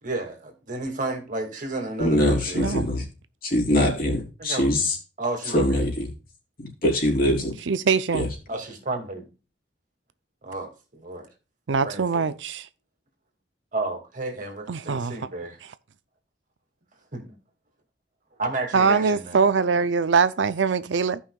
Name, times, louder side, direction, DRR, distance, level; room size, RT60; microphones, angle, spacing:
voice 1, 0.0-2.7 4.4-4.7 5.2-5.8 8.5-9.3 10.4-11.3 11.8-12.4 13.7-15.6 17.1-17.4 18.4-19.5 19.8-19.9, right 2 dB, 45° right, 2.3 m, -32 dB
voice 2, 2.0-3.0 3.4-5.0 5.5-6.1 6.6-7.5 8.1-8.3, left 1 dB, 55° left, 3.1 m, -23 dB
voice 3, 2.5-2.8 7.7-8.3 11.7-12.7 14.7-15.1 18.7-21.2, right 5 dB, 85° right, 0.6 m, -22 dB
16.0 x 5.5 x 2.4 m
head